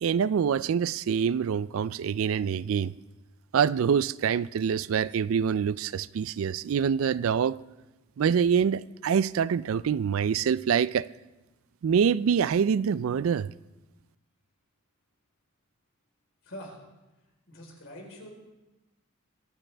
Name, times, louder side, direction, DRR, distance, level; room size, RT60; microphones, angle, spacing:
voice 1, 0.0-2.9 3.5-7.6 8.2-11.1 11.8-13.5, right 7 dB, 75° right, 0.3 m, -25 dB
voice 2, 16.4-16.8 17.5-18.3, equal, 65° left, 4.1 m, -44 dB
23.0 x 12.0 x 3.4 m
head